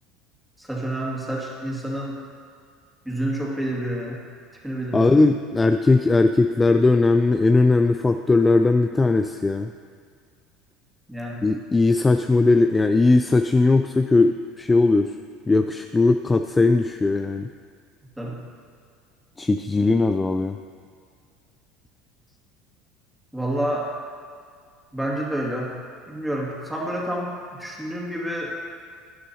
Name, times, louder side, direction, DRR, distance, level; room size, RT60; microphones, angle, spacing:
voice 1, 0.6-2.1 3.0-4.2 4.6-5.2 11.1-11.4 18.2-18.4 23.3-23.9 24.9-25.7 26.1-27.3 27.6-28.5, right 1 dB, 5° right, -3 dB, 2.3 m, -28 dB
voice 2, 4.9-9.7 11.4-15.1 15.5-17.5 19.4-20.6, left 3 dB, 20° left, 7 dB, 0.4 m, -19 dB
12.0 x 9.4 x 2.9 m, 2.1 s
hypercardioid pair, 70°, 0 cm